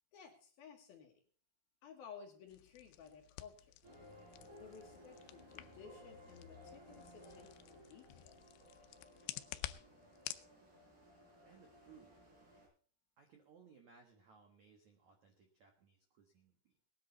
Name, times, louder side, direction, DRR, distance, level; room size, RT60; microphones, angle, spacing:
voice 1, 0.1-1.2 1.8-3.7 4.6-8.4, left 6 dB, 60° left, 2 dB, 2.8 m, -56 dB
sound 1, 2.5-10.5, left 16 dB, 85° left, 2.5 m, -51 dB
sound 2, 3.8-12.7, left 1 dB, 50° right, 10.0 m, -59 dB
voice 2, 11.4-12.2 13.2-16.7, right 6 dB, 85° right, 4 dB, 1.6 m, -64 dB
19.5 x 10.5 x 4.1 m, 0.43 s
omnidirectional pair, 5.9 m